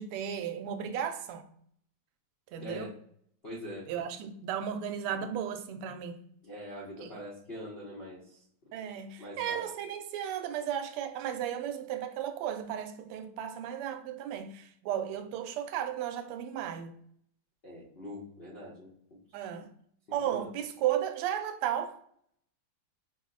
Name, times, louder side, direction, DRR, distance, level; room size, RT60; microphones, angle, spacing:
voice 1, 0.0-1.4 2.5-2.9 3.9-6.2 7.0-7.1 8.7-17.0 19.3-19.7 20.1-22.0, right 9 dB, 85° right, 1.5 m, -34 dB
voice 2, 2.6-2.9 3.4-3.9 6.4-8.4 9.2-9.6 17.6-18.9 20.3-20.5, equal, 50° left, 0.7 m, -43 dB
5.0 x 2.0 x 3.7 m
omnidirectional pair, 2.4 m